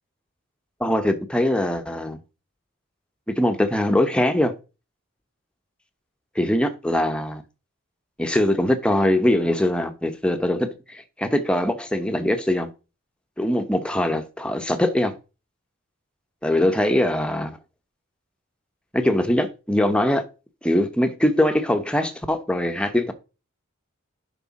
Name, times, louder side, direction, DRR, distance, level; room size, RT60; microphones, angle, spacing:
voice 1, 0.8-2.2 3.3-4.5 6.3-7.4 8.2-12.7 13.4-15.2 16.4-17.6 18.9-20.2 20.6-23.1, left 1 dB, 5° left, 0.9 m, -22 dB
11.0 x 5.5 x 4.1 m
head